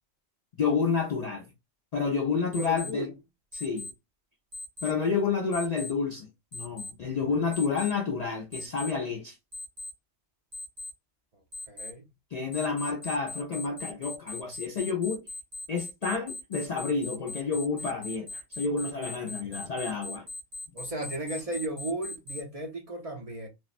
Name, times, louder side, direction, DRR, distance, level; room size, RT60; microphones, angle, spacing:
voice 1, 0.6-1.5 1.9-3.1 3.5-3.9 4.8-9.4 12.3-15.3 15.7-20.3, left 5 dB, 55° left, 0.4 m, -29 dB
voice 2, 2.5-3.1 11.3-11.4 11.7-12.1 20.7-23.5, right 1 dB, 40° right, 0.6 m, -35 dB
Alarm, 2.5-2.9 3.5-3.9 4.5-4.9 5.5-5.9 6.5-6.9 7.5-7.9 8.5-8.9 9.5-9.9 10.5-10.9 11.5-11.9 12.5-22.4, left 2 dB, 55° right, 1.1 m, -39 dB
3.6 x 2.0 x 2.5 m
omnidirectional pair, 1.2 m